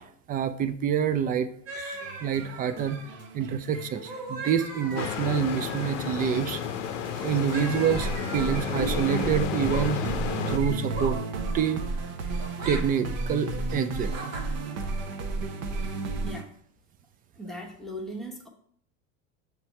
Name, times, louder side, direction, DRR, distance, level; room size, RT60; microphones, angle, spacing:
voice 1, 0.0-1.5 1.7-3.0 3.3-6.6 7.2-10.0 10.5-11.2 11.5-11.8 12.7-14.1, right 8 dB, 25° right, 12 dB, 0.3 m, -27 dB
sound 1, 1.7-3.3 3.9-6.3 7.5-8.9 9.5-9.8 10.9-11.2 12.4-12.8 14.1-14.5, right 2 dB, 85° right, 1.7 m, -39 dB
sound 2, 1.9-16.4, right 3 dB, 45° right, 0.8 m, -33 dB
sound 3, 5.0-10.6, left 10 dB, 75° left, 0.7 m, -32 dB
voice 2, 17.4-18.5, equal, ahead, -1 dB, 1.0 m, -38 dB
6.7 x 3.2 x 4.5 m, 0.64 s
hypercardioid pair, 100°, 37 cm